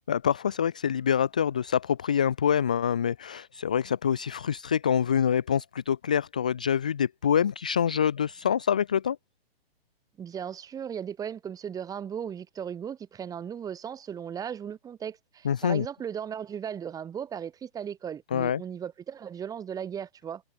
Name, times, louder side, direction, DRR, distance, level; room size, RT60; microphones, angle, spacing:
voice 1, 0.1-9.2 15.4-15.9 18.3-18.6, left 8 dB, 10° left, 0.3 m, -26 dB
voice 2, 10.2-20.4, right 8 dB, 10° right, 7.0 m, -37 dB
hypercardioid pair, 165°, 32 cm